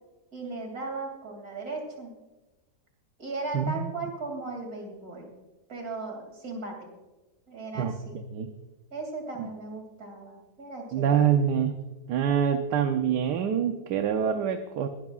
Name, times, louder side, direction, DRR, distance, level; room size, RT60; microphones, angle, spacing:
voice 1, 0.3-2.2 3.2-5.3 5.7-6.9 7.5-8.2 8.9-11.2, right 3 dB, 55° right, 2 dB, 3.1 m, -37 dB
voice 2, 3.5-3.9 7.7-8.0 8.3-8.5 10.9-11.8 12.1-14.9, right 8 dB, 75° right, 7 dB, 1.3 m, -25 dB
21.5 x 11.0 x 2.4 m, 1.1 s
omnidirectional pair, 1.9 m